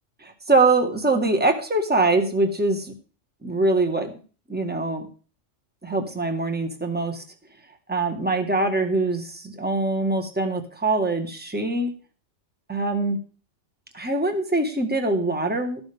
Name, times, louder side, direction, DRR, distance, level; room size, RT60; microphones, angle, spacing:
voice 1, 0.2-2.9 3.4-4.1 4.5-5.0 5.8-7.2 7.9-11.9 12.7-13.2 13.9-15.8, right 2 dB, 10° right, 5 dB, 1.4 m, -23 dB
13.5 x 11.5 x 3.5 m, 0.38 s
omnidirectional pair, 1.3 m